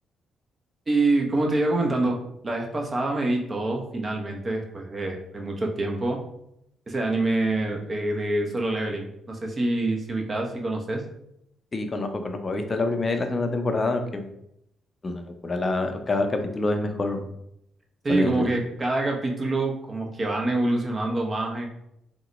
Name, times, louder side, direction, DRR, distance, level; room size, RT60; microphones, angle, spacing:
voice 1, 0.9-2.2 2.4-6.2 6.9-11.0 18.0-21.7, right 2 dB, 35° right, 1 dB, 0.8 m, -26 dB
voice 2, 11.7-14.2 15.0-17.3 18.1-18.5, left 2 dB, 35° left, 5 dB, 0.5 m, -26 dB
3.7 x 2.1 x 3.0 m, 0.78 s
supercardioid pair, 55°, 0 cm